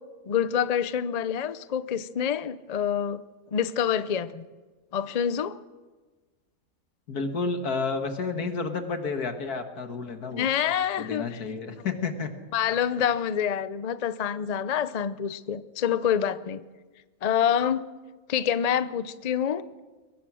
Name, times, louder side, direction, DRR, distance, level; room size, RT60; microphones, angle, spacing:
voice 1, 0.3-3.2 3.5-4.4 4.9-5.6 10.4-11.4 12.5-16.6 17.2-17.9 18.3-19.7, left 8 dB, 50° left, 14 dB, 0.4 m, -27 dB
voice 2, 7.1-10.5 11.0-12.3, left 4 dB, 85° left, 6 dB, 2.2 m, -30 dB
22.0 x 18.5 x 6.3 m, 1.3 s
omnidirectional pair, 1.6 m